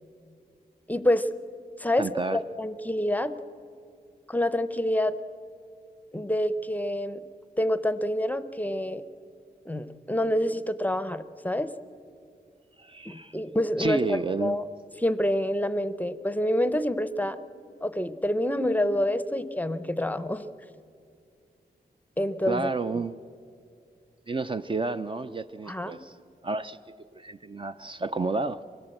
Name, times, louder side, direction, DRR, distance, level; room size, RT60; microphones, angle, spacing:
voice 1, 0.9-1.3 1.8-3.3 4.3-5.2 6.1-7.2 7.6-9.0 9.6-11.7 13.1-14.6 15.0-17.4 17.8-20.5 22.2-22.7 25.7-26.0, left 1 dB, 10° left, 0.6 m, -27 dB
voice 2, 2.0-2.4 12.8-13.4 13.8-14.6 22.5-23.2 24.3-26.2 26.4-26.8 27.1-28.6, right 3 dB, 30° right, 0.4 m, -30 dB
24.0 x 17.5 x 7.7 m
wide cardioid pair, 165°, 16 cm